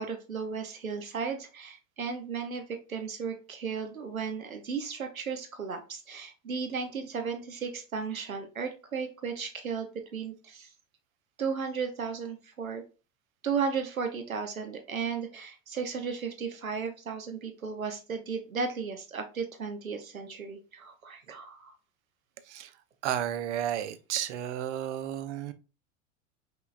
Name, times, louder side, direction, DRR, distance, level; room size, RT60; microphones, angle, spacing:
voice 1, 0.0-2.6 2.9-10.7 11.4-12.8 13.4-21.7, right 5 dB, 85° right, 0.9 m, -35 dB
voice 2, 23.0-25.5, right 10 dB, 55° right, 0.7 m, -32 dB
5.7 x 3.8 x 2.5 m
figure-of-eight pair, 80°, 40 cm